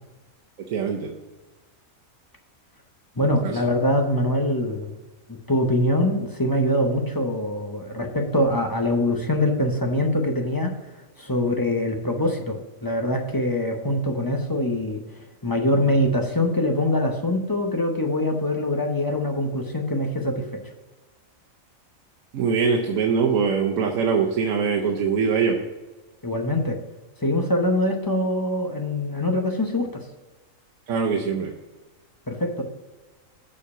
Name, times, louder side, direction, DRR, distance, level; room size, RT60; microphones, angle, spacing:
voice 1, 0.7-1.1 3.4-3.5 11.4-11.5 22.3-25.6 30.9-31.5, right 5 dB, 90° right, 1 dB, 1.2 m, -23 dB
voice 2, 3.2-5.0 5.3-10.7 11.2-15.0 15.4-20.5 26.2-26.8 27.2-30.0 32.3-32.6, left 1 dB, 20° left, 3 dB, 0.6 m, -23 dB
6.8 x 4.8 x 7.0 m, 1.2 s
omnidirectional pair, 1.4 m